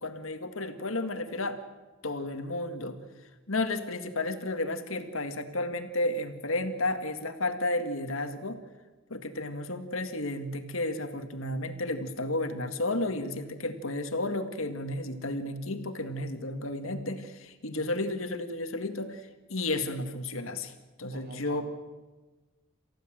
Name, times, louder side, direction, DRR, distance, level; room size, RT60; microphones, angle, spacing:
voice 1, 0.0-1.6 2.0-3.0 3.5-8.6 9.1-19.2 19.5-20.7 21.0-21.6, left 2 dB, 75° left, 7 dB, 2.0 m, -32 dB
voice 2, 21.1-21.6, right 3 dB, 45° right, 3 dB, 3.8 m, -46 dB
28.5 x 15.5 x 7.6 m, 1.2 s
head